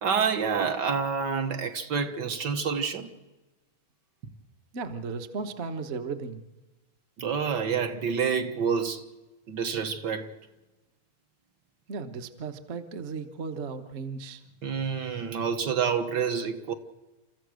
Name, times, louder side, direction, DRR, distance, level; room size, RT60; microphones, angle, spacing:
voice 1, 0.0-3.1 7.2-9.1 9.5-10.3 14.6-16.7, right 6 dB, 55° right, 1.8 m, -28 dB
voice 2, 4.7-6.4 11.9-14.4, right 4 dB, 40° right, 1.2 m, -35 dB
30.0 x 14.5 x 6.4 m
omnidirectional pair, 2.4 m